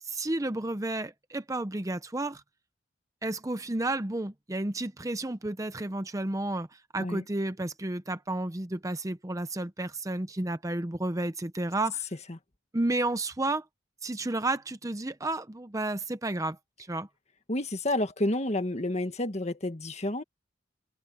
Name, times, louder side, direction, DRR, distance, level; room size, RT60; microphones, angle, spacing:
voice 1, 0.0-2.4 3.2-12.1 12.7-13.6 14.0-17.1, right 2 dB, 15° right, 0.7 m, -32 dB
voice 2, 17.5-20.2, left 1 dB, 35° left, 1.7 m, -30 dB
head